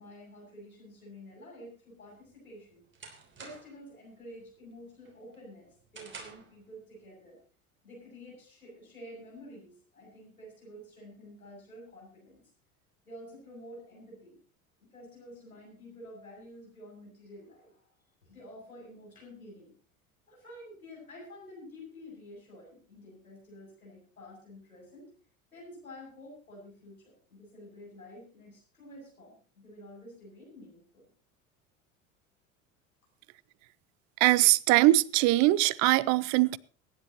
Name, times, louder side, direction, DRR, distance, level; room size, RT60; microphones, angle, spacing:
voice 1, 0.0-2.8 3.4-7.4 7.8-12.4 13.1-14.4 14.8-17.9 18.2-19.7 20.3-25.1 25.5-31.1, left 1 dB, 85° left, 7.1 m, -50 dB
sound 1, 2.1-3.9 4.3-4.7 5.1-6.6, right 4 dB, 25° right, 3.4 m, -49 dB
voice 2, 34.2-36.6, right 19 dB, 45° right, 0.6 m, -22 dB
23.5 x 10.5 x 3.0 m
figure-of-eight pair, 75°, 42 cm